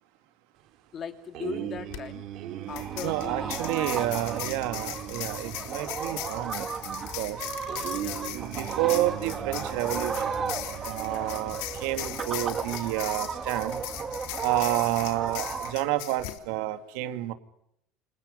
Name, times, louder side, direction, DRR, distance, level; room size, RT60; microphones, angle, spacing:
voice 1, 0.9-2.3 2.7-4.7 8.0-8.3 11.1-11.6, left 7 dB, 35° left, 8 dB, 2.8 m, -40 dB
sound 1, 1.3-12.6, right 12 dB, 55° right, 3.2 m, -40 dB
sound 2, 1.8-2.0 2.8-16.4, left 16 dB, 80° left, 3.2 m, -39 dB
sound 3, 2.7-15.7, right 5 dB, 25° right, 4.3 m, -35 dB
voice 2, 3.0-7.5 8.2-10.4 10.9-13.8 14.4-17.3, right 15 dB, 85° right, 9 dB, 2.6 m, -30 dB
29.0 x 27.5 x 5.5 m, 0.75 s
cardioid pair, 150°, 0 cm